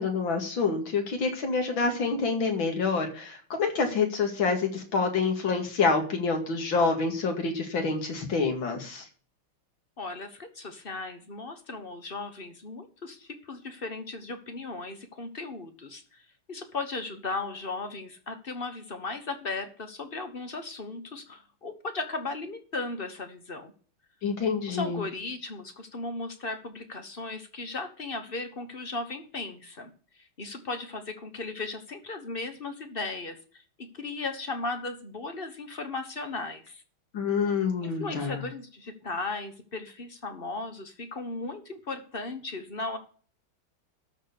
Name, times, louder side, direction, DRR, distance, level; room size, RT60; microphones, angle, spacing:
voice 1, 0.0-9.0 24.2-25.0 37.1-38.4, left 4 dB, 65° left, 4 dB, 2.9 m, -27 dB
voice 2, 10.0-16.2 16.5-23.7 24.7-29.9 30.2-36.8 37.8-43.0, left 3 dB, 35° left, 8 dB, 1.1 m, -36 dB
13.0 x 4.5 x 8.3 m, 0.43 s
omnidirectional pair, 2.3 m